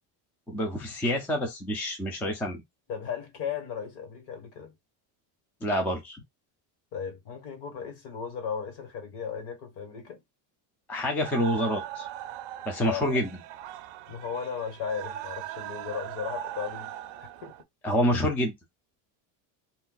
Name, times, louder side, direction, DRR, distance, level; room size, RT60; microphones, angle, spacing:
voice 1, 0.5-2.6 5.6-6.2 10.9-12.1 12.7-13.4 17.8-18.5, equal, 5° left, 0.3 m, -27 dB
voice 2, 2.9-4.7 6.9-10.2 12.8-13.2 14.1-16.9 17.2-17.5, left 7 dB, 55° left, 1.5 m, -36 dB
sound 1, 11.2-17.6, right 11 dB, 60° right, 0.6 m, -39 dB
2.6 x 2.2 x 3.8 m
cardioid pair, 145°, 50 cm